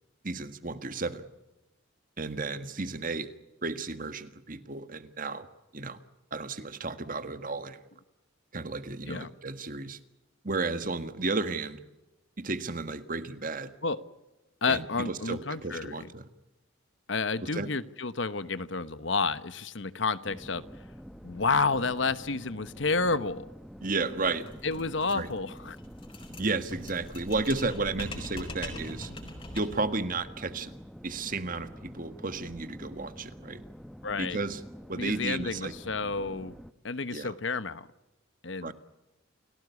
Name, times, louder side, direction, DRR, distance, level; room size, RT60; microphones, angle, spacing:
voice 1, 0.2-1.3 2.2-3.3 3.6-5.5 5.7-6.0 6.3-7.8 8.5-10.0 10.4-11.8 12.4-13.7 14.7-16.3 17.4-17.7 23.8-24.5 25.1-25.3 26.4-29.1 29.5-30.7 31.0-33.6 34.2-34.6 34.9-35.7 37.1-37.3 38.6-38.7, right 3 dB, 45° right, 11 dB, 1.6 m, -33 dB
voice 2, 14.6-16.0 17.1-20.6 21.2-23.4 24.6-25.8 34.0-34.4 34.9-36.6 36.8-37.9 38.4-38.7, left 4 dB, 65° left, 14 dB, 1.1 m, -30 dB
sound 1, 20.2-36.7, equal, ahead, 0.8 m, -47 dB
sound 2, 24.2-29.9, left 1 dB, 25° left, 4.7 m, -42 dB
30.0 x 17.5 x 8.3 m, 1.0 s
head